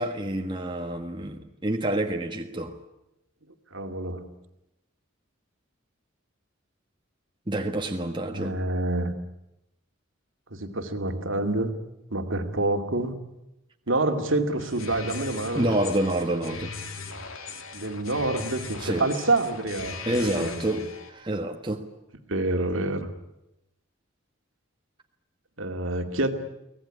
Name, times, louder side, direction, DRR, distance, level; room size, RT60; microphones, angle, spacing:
voice 1, 0.0-2.8 7.5-8.6 15.5-16.7 18.8-19.1 20.1-21.8, right 1 dB, 25° right, 1.5 m, -28 dB
voice 2, 3.7-4.3 8.3-9.1 10.5-11.7 12.1-13.2 13.9-15.8 17.7-20.0 20.4-20.9 22.3-23.1 25.6-26.3, right 2 dB, 65° right, 2.4 m, -27 dB
sound 1, 14.6-21.1, left 5 dB, 80° left, 2.9 m, -39 dB
24.0 x 18.0 x 9.9 m
head